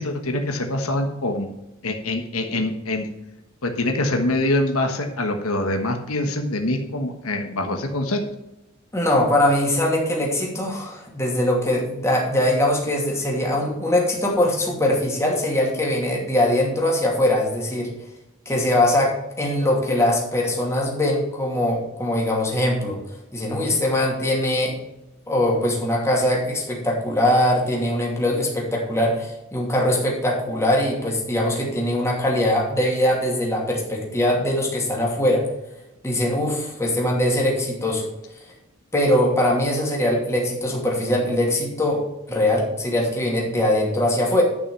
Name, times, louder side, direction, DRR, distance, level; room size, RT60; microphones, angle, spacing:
voice 1, 0.0-1.5 1.8-3.1 3.6-8.2, left 1 dB, 80° left, 4 dB, 1.4 m, -24 dB
voice 2, 8.9-17.9 18.5-23.0 23.3-24.8 25.3-35.5 36.0-38.1 38.9-44.4, left 1 dB, 15° left, -2 dB, 2.6 m, -22 dB
11.0 x 5.9 x 5.5 m, 0.93 s
head